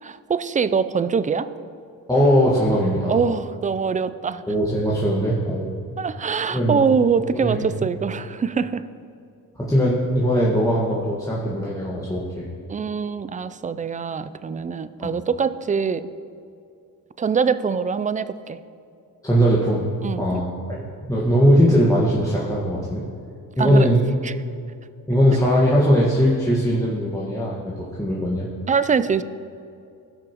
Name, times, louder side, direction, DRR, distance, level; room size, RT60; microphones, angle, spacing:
voice 1, 0.0-1.5 3.1-4.4 6.0-8.8 12.7-16.1 17.2-18.6 20.0-20.4 23.6-23.9 24.2-24.3 28.7-29.2, right 6 dB, 20° right, 14 dB, 0.4 m, -23 dB
voice 2, 2.1-3.2 4.5-5.7 6.5-6.8 7.3-7.6 9.6-12.5 15.0-15.1 19.2-19.8 20.2-23.0 23.6-24.0 25.1-28.5, equal, 10° left, -6 dB, 1.5 m, -20 dB
17.0 x 5.9 x 3.0 m, 2.5 s
cardioid pair, 70°, 37 cm